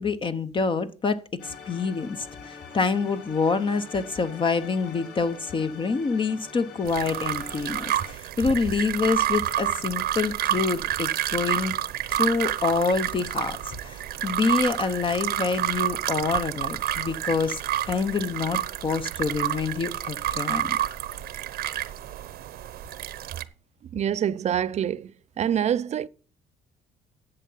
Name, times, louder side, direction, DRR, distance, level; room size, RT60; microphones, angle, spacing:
voice 1, 0.0-11.8 12.1-17.6 17.9-20.8, left 4 dB, 30° left, 0.7 m, -27 dB
sound 1, 1.4-8.1, left 5 dB, 70° left, 2.7 m, -44 dB
sound 2, 6.9-23.4, right 12 dB, 65° right, 0.9 m, -29 dB
voice 2, 23.9-25.1 25.4-26.1, right 9 dB, 40° right, 0.5 m, -25 dB
10.5 x 7.5 x 5.5 m
cardioid pair, 110°, 17 cm